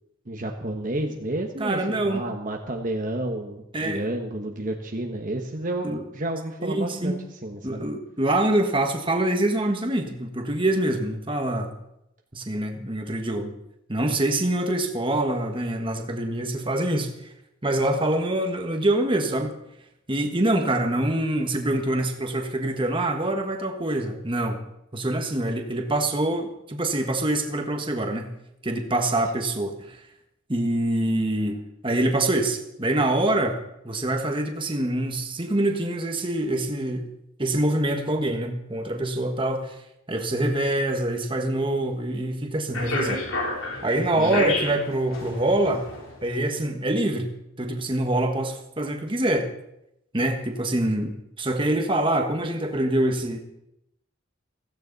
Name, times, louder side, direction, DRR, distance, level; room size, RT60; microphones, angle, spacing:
voice 1, 0.3-7.8 44.1-44.4, right 1 dB, 40° right, 2 dB, 1.1 m, -31 dB
voice 2, 1.6-2.3 3.7-4.1 5.8-6.0 6.6-7.2 7.6-11.7 12.3-13.5 13.9-17.1 17.6-19.5 20.1-24.6 24.9-28.3 28.6-30.0 30.5-33.6 33.8-37.1 37.4-39.7 40.1-43.2 43.8-45.8 46.2-47.3 47.6-49.5 50.1-51.1 51.4-53.4, right 1 dB, 25° right, 4 dB, 1.5 m, -25 dB
sound 1, 42.7-46.2, left 2 dB, 85° left, 3.7 m, -30 dB
16.0 x 15.5 x 4.1 m, 0.84 s
head